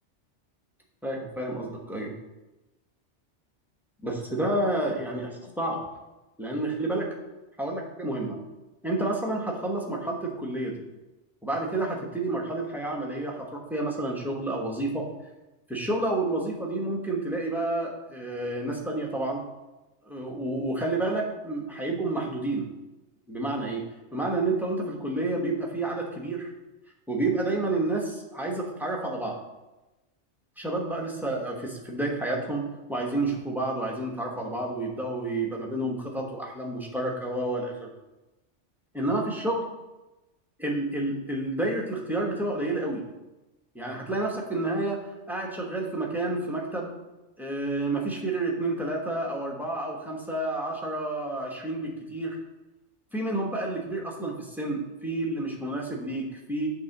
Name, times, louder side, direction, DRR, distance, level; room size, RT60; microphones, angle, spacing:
voice 1, 1.0-2.1 4.0-5.8 6.4-7.2 7.6-8.4 8.8-10.8 11.4-15.0 15.7-19.4 20.1-22.7 23.3-23.8 24.1-26.5 27.1-29.4 30.6-37.9 38.9-39.6 40.6-43.0 43.7-45.0 45.3-46.9 47.4-52.4 53.1-56.7, right 2 dB, ahead, -1 dB, 1.2 m, -30 dB
8.3 x 3.7 x 5.9 m, 1.0 s
omnidirectional pair, 1.2 m